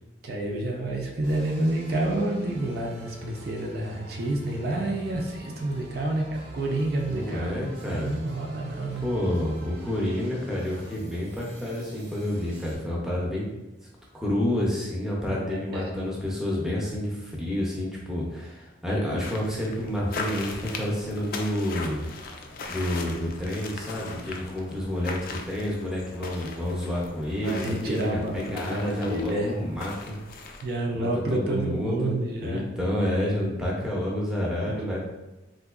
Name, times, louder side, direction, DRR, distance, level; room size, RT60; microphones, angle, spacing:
voice 1, 0.2-7.5 7.9-9.0 15.3-15.9 27.4-29.5 30.6-32.6 34.7-34.8, right 1 dB, 55° right, 0 dB, 0.4 m, -29 dB
sound 1, 1.2-12.8, right 1 dB, 70° right, 0.8 m, -45 dB
voice 2, 7.1-8.2 9.0-13.5 14.1-22.0 22.7-30.2 30.9-35.0, left 1 dB, 5° right, -4 dB, 0.6 m, -29 dB
sound 2, 19.2-30.8, left 3 dB, 50° left, 0.3 m, -39 dB
3.7 x 2.7 x 2.4 m, 1.0 s
head